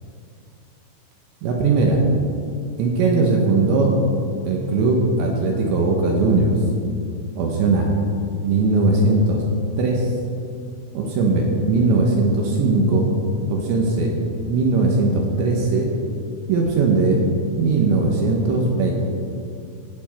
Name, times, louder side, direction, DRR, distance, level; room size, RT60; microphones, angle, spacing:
voice 1, 1.4-2.0 2.8-3.9 4.4-6.6 7.4-7.9 8.4-9.4 9.8-10.1 10.9-13.1 13.5-14.1 14.5-15.9 16.5-17.2 17.6-18.9, right 3 dB, 75° right, 0 dB, 3.1 m, -19 dB
17.5 x 7.2 x 4.3 m, 2.4 s
omnidirectional pair, 5.8 m